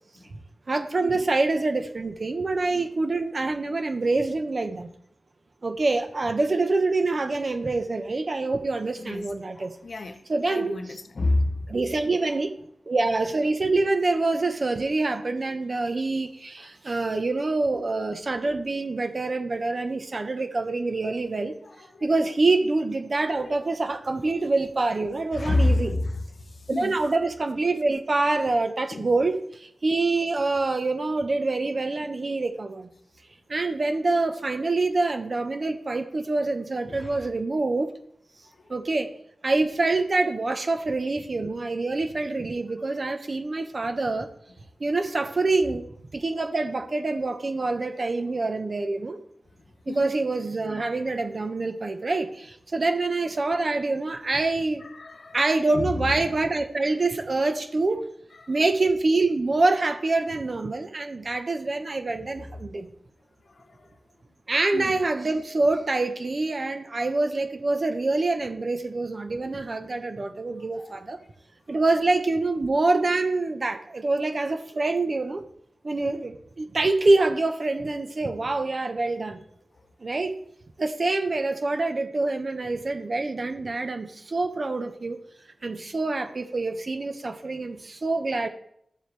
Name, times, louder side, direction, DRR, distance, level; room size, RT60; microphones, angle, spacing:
voice 1, 0.7-4.9 5.6-9.7 10.3-10.8 11.7-12.6 12.9-21.6 22.0-25.9 26.7-32.9 33.5-37.9 38.7-39.1 39.4-44.3 44.8-49.2 49.9-54.8 55.3-58.0 58.5-62.9 64.5-71.2 71.7-75.4 75.8-79.4 80.0-80.4 80.8-85.2 85.6-88.5, right 3 dB, 50° right, 1.3 m, -26 dB
voice 2, 9.0-11.7 21.6-22.1 23.3-23.6 25.3-26.1 26.4-27.0 28.9-29.1 36.8-37.2 49.9-50.1 54.8-55.4 55.7-56.4 58.4-58.5 61.1-61.3 62.1-62.2 63.5-63.9 64.7-65.0 70.8-71.0, left 2 dB, 65° left, 1.1 m, -30 dB
13.0 x 7.3 x 3.5 m
cardioid pair, 50°, 0 cm